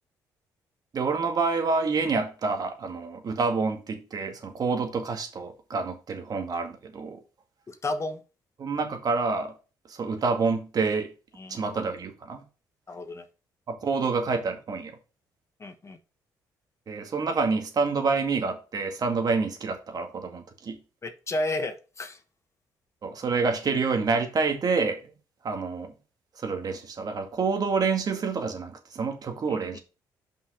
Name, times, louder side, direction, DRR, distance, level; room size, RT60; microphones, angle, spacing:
voice 1, 0.9-7.2 8.6-9.5 9.9-11.1 11.5-12.4 13.7-15.0 16.9-20.8 23.0-25.1 25.4-25.9 26.4-29.8, right 4 dB, 50° right, 2.0 m, -28 dB
voice 2, 7.7-8.2 11.4-11.6 12.9-13.3 15.6-16.0 21.0-22.2 29.5-29.8, left 2 dB, 35° left, 1.2 m, -32 dB
5.7 x 5.5 x 5.1 m
supercardioid pair, 65°, 8 cm